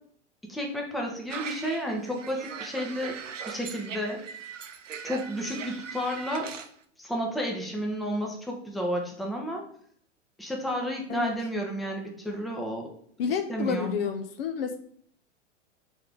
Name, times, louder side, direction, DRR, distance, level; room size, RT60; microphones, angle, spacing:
voice 1, 0.5-3.1 3.4-4.5 5.0-6.5 7.0-9.6 10.4-12.9 13.5-13.9, equal, ahead, 0 dB, 0.6 m, -31 dB
sound 1, 1.3-6.7, right 7 dB, 85° right, 0.5 m, -40 dB
voice 2, 13.2-14.8, left 6 dB, 55° left, 7 dB, 0.6 m, -29 dB
3.4 x 3.4 x 3.7 m, 0.62 s
figure-of-eight pair, 100°, 37 cm